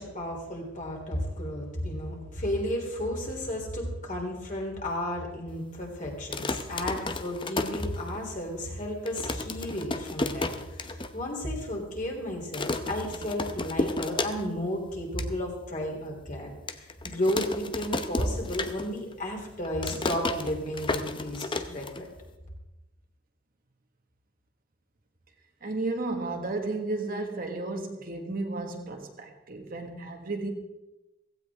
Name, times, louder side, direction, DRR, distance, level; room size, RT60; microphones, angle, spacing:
voice 1, 0.0-22.1, left 1 dB, 40° left, 0 dB, 3.3 m, -33 dB
sound 1, 6.2-8.4 8.8-8.9 9.1-11.1 11.5-11.6 11.8-12.1 12.5-14.7 15.0-15.3 15.8-15.9 16.7-19.1 19.4-22.3, left 2 dB, 25° left, 0.8 m, -33 dB
voice 2, 25.6-30.5, right 2 dB, 45° right, 3 dB, 1.5 m, -33 dB
16.5 x 15.5 x 3.6 m, 1.0 s
head